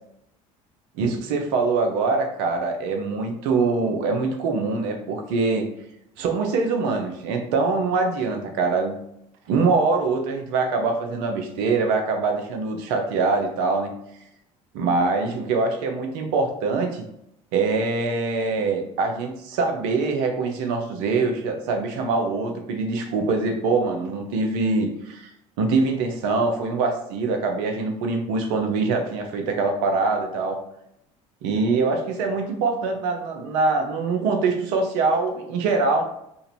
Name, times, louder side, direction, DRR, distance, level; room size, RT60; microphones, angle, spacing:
voice 1, 1.0-5.6 6.2-9.0 9.5-13.9 14.7-17.0 17.5-25.3 25.6-30.6 31.4-36.0, right 3 dB, 75° right, 4 dB, 0.7 m, -23 dB
2.8 x 2.6 x 4.3 m, 0.78 s
hypercardioid pair, 70°, 17 cm